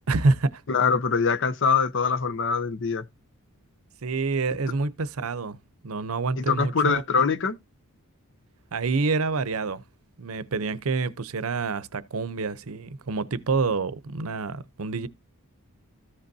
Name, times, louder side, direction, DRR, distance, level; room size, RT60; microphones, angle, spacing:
voice 1, 0.1-0.6 4.0-5.6 5.8-7.0 8.7-9.8 10.2-15.1, right 3 dB, 70° right, 0.7 m, -27 dB
voice 2, 0.7-3.1 6.4-7.6, left 5 dB, 60° left, 0.7 m, -23 dB
14.5 x 5.2 x 2.7 m
head